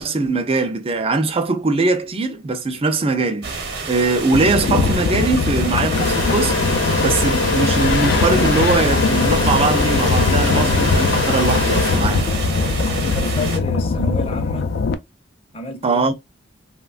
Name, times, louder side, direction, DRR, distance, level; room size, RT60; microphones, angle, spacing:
voice 1, 0.0-3.5 3.9-6.6 7.0-12.3 15.8-16.1, right 3 dB, 30° right, 0.4 m, -21 dB
sound 1, 3.4-13.6, right 3 dB, 55° right, 1.0 m, -28 dB
sound 2, 4.3-14.9, left 4 dB, 55° left, 0.3 m, -21 dB
sound 3, 5.9-12.6, left 3 dB, 75° left, 0.8 m, -23 dB
voice 2, 13.1-14.7 15.5-16.1, left 1 dB, 30° left, 0.7 m, -29 dB
3.0 x 2.2 x 2.4 m
head